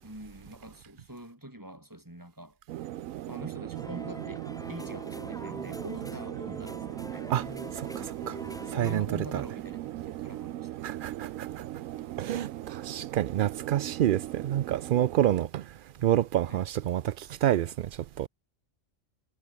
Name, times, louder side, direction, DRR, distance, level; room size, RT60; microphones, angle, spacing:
voice 1, 0.0-2.6 3.2-7.3 7.9-8.2 8.7-10.7 16.5-16.6, right 1 dB, 15° right, 4.2 m, -44 dB
sound 1, 2.7-15.5, right 14 dB, 85° right, 1.0 m, -39 dB
sound 2, 3.7-9.0, equal, 5° left, 2.8 m, -43 dB
voice 2, 7.8-8.4 8.7-9.1 9.3-9.4 10.8-11.5 12.2-15.6 16.0-17.9 18.2-18.3, right 11 dB, 65° right, 0.5 m, -28 dB
omnidirectional pair, 1.4 m